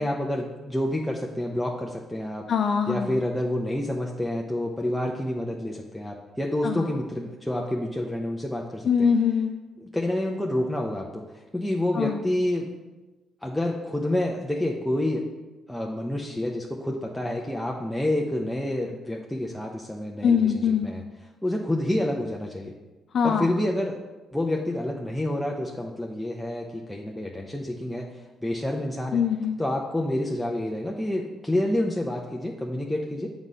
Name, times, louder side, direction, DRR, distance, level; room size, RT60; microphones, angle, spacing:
voice 1, 0.0-2.5 2.9-8.9 9.8-12.7 13.4-15.2 15.7-20.5 20.8-21.0 21.4-22.8 23.2-24.0 24.3-29.2 29.6-33.3, left 1 dB, 5° left, -1 dB, 0.7 m, -28 dB
voice 2, 2.5-3.2 6.6-6.9 8.8-9.6 11.9-12.2 20.2-20.9 23.1-23.5 29.1-29.6, left 7 dB, 60° left, 5 dB, 0.5 m, -23 dB
7.4 x 4.1 x 6.2 m, 1.2 s
cardioid pair, 90°, 0 cm